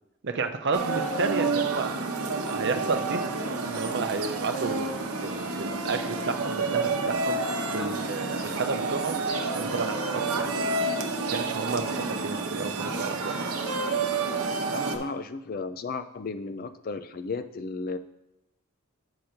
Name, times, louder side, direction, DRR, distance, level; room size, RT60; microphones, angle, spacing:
voice 1, 0.2-2.0 2.5-3.2 3.7-7.4 7.7-9.2 9.6-10.7 11.3-13.4, right 4 dB, 50° right, 6 dB, 0.6 m, -32 dB
sound 1, 0.7-15.0, right 3 dB, 85° right, 0.8 m, -29 dB
voice 2, 14.7-18.0, left 4 dB, 40° left, 10 dB, 0.4 m, -34 dB
7.8 x 5.0 x 4.4 m, 0.90 s
head